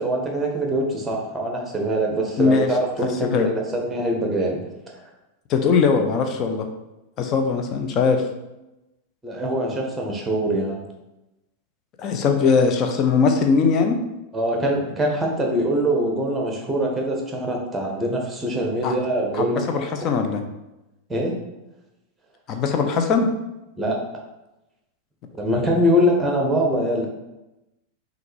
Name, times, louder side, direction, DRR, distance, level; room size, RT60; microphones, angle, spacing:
voice 1, 0.0-4.6 9.2-10.8 14.3-19.6 20.0-20.1 21.1-21.3 23.8-24.0 25.4-27.1, right 1 dB, 10° right, 0 dB, 1.0 m, -23 dB
voice 2, 2.4-2.7 3.0-3.5 5.5-6.7 7.2-8.2 12.0-14.0 18.8-18.9 19.4-20.4 22.5-23.3, left 5 dB, 35° left, 5 dB, 0.6 m, -20 dB
5.7 x 2.6 x 3.3 m, 0.96 s
figure-of-eight pair, 90°, 0 cm